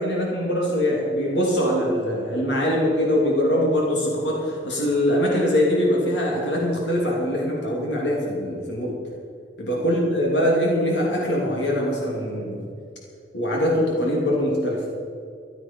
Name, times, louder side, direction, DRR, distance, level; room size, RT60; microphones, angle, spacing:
voice 1, 0.0-9.0 9.6-12.7 13.3-14.8, equal, 80° left, -2 dB, 2.8 m, -23 dB
15.0 x 11.0 x 5.6 m, 2.3 s
head